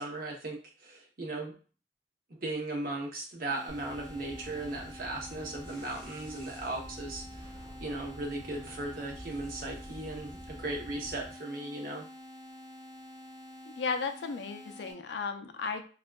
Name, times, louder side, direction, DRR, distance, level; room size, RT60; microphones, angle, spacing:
voice 1, 0.0-1.6 2.3-7.5 7.8-12.1, right 2 dB, 50° right, 0 dB, 0.7 m, -37 dB
sound 1, 3.5-14.9, left 1 dB, ahead, 1.1 m, -49 dB
sound 2, 3.7-11.3, equal, 30° right, 1.2 m, -48 dB
voice 2, 13.7-15.9, left 5 dB, 70° left, 6 dB, 0.4 m, -35 dB
3.5 x 2.3 x 2.2 m, 0.38 s
head